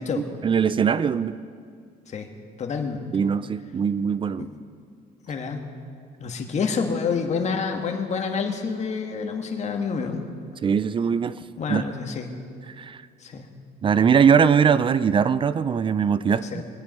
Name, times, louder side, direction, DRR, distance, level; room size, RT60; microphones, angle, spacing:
voice 1, 0.0-1.3 3.1-4.5 10.6-11.4 11.7-11.8 12.8-13.0 13.8-16.4, right 7 dB, 30° right, 16 dB, 0.4 m, -21 dB
voice 2, 2.6-3.0 4.4-4.5 5.3-5.7 6.2-10.2 11.6-12.3 13.2-13.5 16.3-16.6, left 5 dB, 40° left, 4 dB, 1.6 m, -28 dB
21.0 x 8.9 x 5.5 m, 2.2 s
cardioid pair, 110°, 17 cm